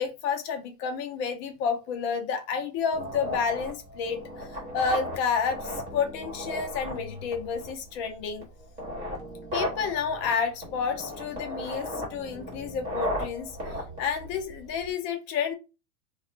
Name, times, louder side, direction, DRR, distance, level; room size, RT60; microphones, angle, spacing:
voice 1, 0.0-4.5 4.7-8.5 9.5-13.5 14.0-15.5, left 6 dB, 30° left, 0.4 m, -30 dB
sound 1, 2.9-14.9, left 1 dB, 20° right, 1.2 m, -36 dB
2.4 x 2.1 x 2.9 m
supercardioid pair, 150°, 41 cm